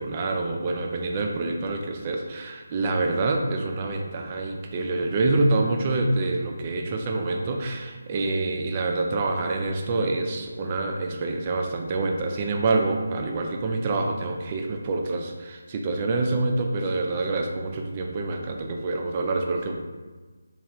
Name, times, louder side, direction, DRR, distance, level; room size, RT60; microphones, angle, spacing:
voice 1, 0.0-19.8, right 2 dB, 30° right, 2 dB, 0.3 m, -26 dB
3.2 x 2.3 x 2.9 m, 1.4 s
figure-of-eight pair, 155°, 0 cm